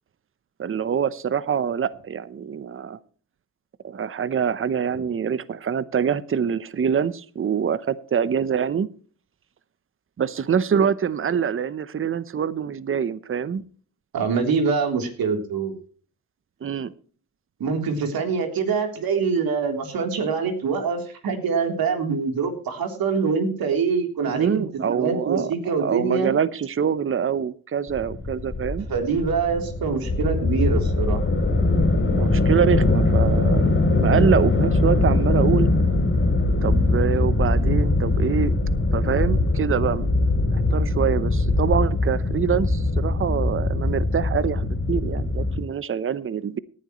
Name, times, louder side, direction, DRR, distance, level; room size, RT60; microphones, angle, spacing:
voice 1, 0.6-3.0 3.8-8.9 10.2-13.6 16.6-16.9 24.2-25.5 25.8-28.9 32.1-35.7 36.6-38.5 38.9-40.2 40.5-46.6, right 7 dB, 35° right, 17 dB, 0.8 m, -25 dB
voice 2, 14.1-15.7 17.6-26.3 28.9-31.2 43.2-43.4, right 5 dB, 70° right, 4 dB, 3.5 m, -24 dB
sound 1, 27.9-45.6, left 2 dB, 35° left, 3.8 m, -21 dB
18.0 x 10.5 x 3.1 m, 0.42 s
cardioid pair, 80°, 37 cm